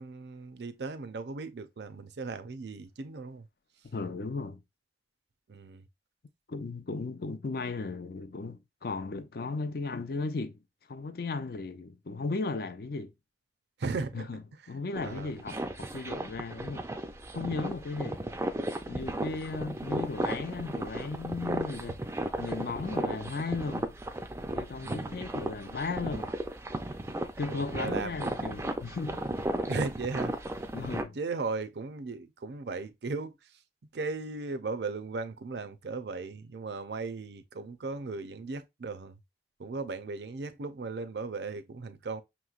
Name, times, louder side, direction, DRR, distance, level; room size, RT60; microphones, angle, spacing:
voice 1, 0.0-3.5 5.5-5.8 13.8-14.3 15.0-15.3 19.2-19.4 24.8-25.2 27.5-28.3 29.7-30.3 31.1-33.4 33.9-39.2 39.6-42.2, right 3 dB, 70° right, 0.5 m, -37 dB
voice 2, 3.8-4.6 6.5-10.6 10.9-13.1 14.1-14.4 14.7-16.9 17.3-18.3 18.9-22.0 22.4-23.9 24.5-26.3 27.4-29.2 30.7-31.2, left 3 dB, 55° left, 0.5 m, -36 dB
sound 1, 14.9-31.0, right 1 dB, 15° right, 0.4 m, -35 dB
5.8 x 3.0 x 2.4 m
head